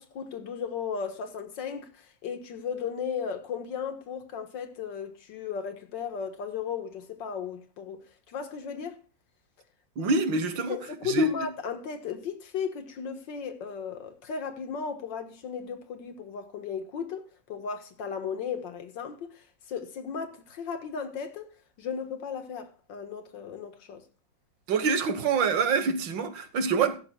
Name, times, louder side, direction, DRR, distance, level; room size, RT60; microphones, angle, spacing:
voice 1, 0.0-9.0 10.7-21.5 21.8-24.0, left 6 dB, 80° left, 2.0 m, -35 dB
voice 2, 10.0-10.8 11.0-11.3 24.7-27.0, right 4 dB, 85° right, 1.9 m, -25 dB
15.0 x 13.0 x 2.2 m
omnidirectional pair, 2.0 m